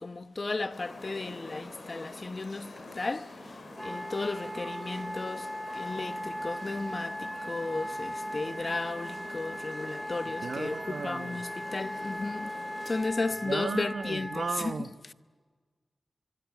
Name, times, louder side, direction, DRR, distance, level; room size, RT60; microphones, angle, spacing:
voice 1, 0.0-12.6 12.8-15.1, left 3 dB, 45° left, 1.0 m, -35 dB
sound 1, 0.7-13.0, left 2 dB, 60° left, 7.2 m, -46 dB
Wind instrument woodwind instrument, 3.8-14.6, equal, ahead, 2.9 m, -38 dB
voice 2, 10.4-11.4 13.5-14.9, right 5 dB, 75° right, 1.1 m, -35 dB
24.0 x 24.0 x 9.4 m
wide cardioid pair, 70°, 0 cm